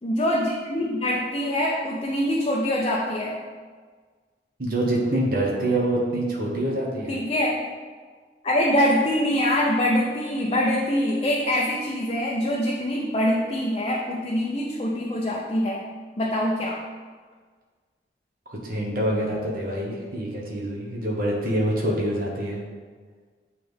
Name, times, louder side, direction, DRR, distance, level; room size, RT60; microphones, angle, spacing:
voice 1, 0.0-3.4 7.1-7.6 8.4-15.8 16.2-16.8, left 1 dB, 30° left, -3 dB, 0.5 m, -24 dB
voice 2, 4.6-7.2 18.5-22.6, right 1 dB, 55° right, -3 dB, 1.2 m, -26 dB
8.6 x 3.2 x 3.5 m, 1.5 s
head